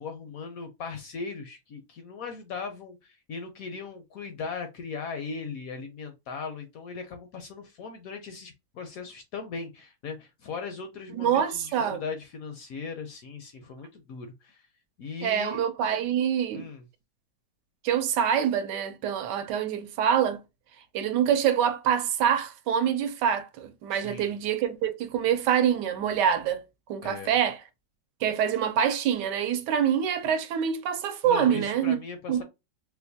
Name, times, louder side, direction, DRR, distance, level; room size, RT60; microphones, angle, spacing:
voice 1, 0.0-14.6 15.0-15.6 16.5-16.8 23.9-24.3 27.0-27.3 31.2-32.4, left 5 dB, 70° left, 0.9 m, -38 dB
voice 2, 11.1-12.0 15.2-16.7 17.8-20.4 20.9-26.6 26.9-27.6 28.2-32.0 32.3-32.4, right 8 dB, 75° right, 1.2 m, -25 dB
4.4 x 2.1 x 2.6 m
omnidirectional pair, 1.9 m